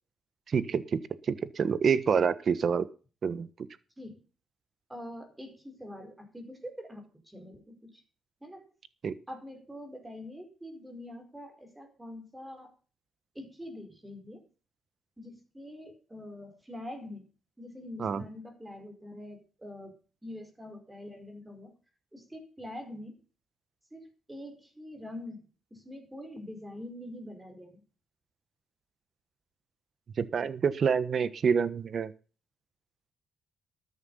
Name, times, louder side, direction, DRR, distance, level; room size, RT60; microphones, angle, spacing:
voice 1, 0.5-1.0 1.3-2.9 3.2-3.5 9.0-9.1 18.0-18.2 30.2-32.1, right 6 dB, 50° right, 15 dB, 1.2 m, -27 dB
voice 2, 4.9-8.0 8.4-8.7 9.3-12.7 13.3-14.4 15.2-17.2 17.6-19.9 20.2-21.7 22.1-23.2 23.9-25.4 25.7-27.8, left 1 dB, 10° right, 6 dB, 4.8 m, -44 dB
13.5 x 9.6 x 5.6 m, 0.37 s
cardioid pair, 90°, 0 cm